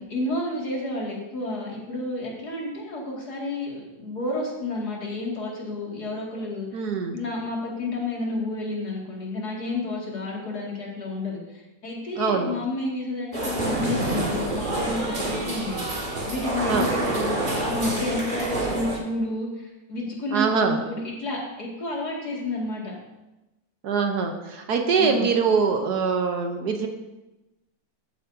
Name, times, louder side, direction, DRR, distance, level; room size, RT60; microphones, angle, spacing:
voice 1, 0.0-22.9 25.0-25.3, left 2 dB, 60° left, -3 dB, 2.7 m, -31 dB
voice 2, 6.7-7.1 12.2-12.5 16.7-16.9 20.3-20.8 23.8-26.9, right 5 dB, 65° right, 4 dB, 1.4 m, -23 dB
sound 1, 13.3-19.0, right 1 dB, 30° right, 1.7 m, -27 dB
14.5 x 8.2 x 2.7 m, 1.0 s
omnidirectional pair, 1.9 m